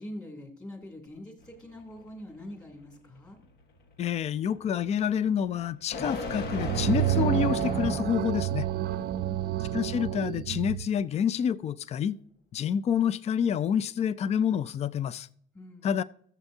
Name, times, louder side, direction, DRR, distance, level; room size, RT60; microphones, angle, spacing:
voice 1, 0.0-3.4 8.9-9.4 15.5-15.9, left 1 dB, 20° left, 2.7 m, -44 dB
sound 1, 1.4-8.4, left 3 dB, 70° left, 1.5 m, -38 dB
voice 2, 4.0-8.7 9.6-12.2 12.5-15.3 15.8-16.0, left 8 dB, 40° left, 0.4 m, -28 dB
sound 2, 6.3-10.9, right 13 dB, 65° right, 0.5 m, -29 dB
17.5 x 7.2 x 2.7 m
cardioid pair, 110°, 17 cm